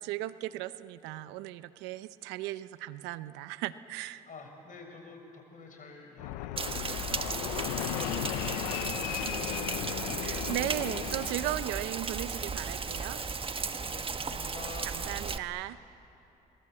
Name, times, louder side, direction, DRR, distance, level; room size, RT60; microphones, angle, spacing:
voice 1, 0.0-4.3 10.2-13.7 14.8-15.8, right 15 dB, 85° right, 14 dB, 0.8 m, -37 dB
voice 2, 4.3-10.1 13.8-14.9, left 4 dB, 50° left, 3 dB, 6.4 m, -48 dB
Fixed-wing aircraft airplane, 6.2-11.8, left 14 dB, 90° left, 0.8 m, -36 dB
Rain, 6.6-15.4, right 4 dB, 30° right, 1.4 m, -35 dB
29.5 x 23.0 x 7.8 m, 2.9 s
supercardioid pair, 65°, 18 cm